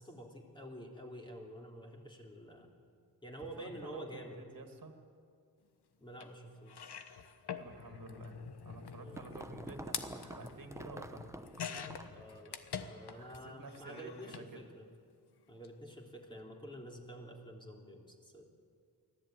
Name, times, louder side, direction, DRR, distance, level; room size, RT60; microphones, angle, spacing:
voice 1, 0.0-2.7 3.2-4.4 6.0-6.9 9.0-9.3 12.1-14.9 15.5-18.4, equal, 10° left, 0 dB, 3.4 m, -49 dB
voice 2, 3.6-4.9 7.6-8.4 8.6-11.3 13.1-14.7, right 3 dB, 55° right, 5 dB, 2.4 m, -51 dB
sound 1, 6.2-6.3 6.7-13.4 13.7-14.5 15.5-15.7 15.9-16.0, left 7 dB, 85° left, 1.3 m, -46 dB
sound 2, 8.5-12.3, right 1 dB, 10° right, 0.9 m, -48 dB
24.0 x 15.5 x 9.2 m, 2.2 s
wide cardioid pair, 115°, 38 cm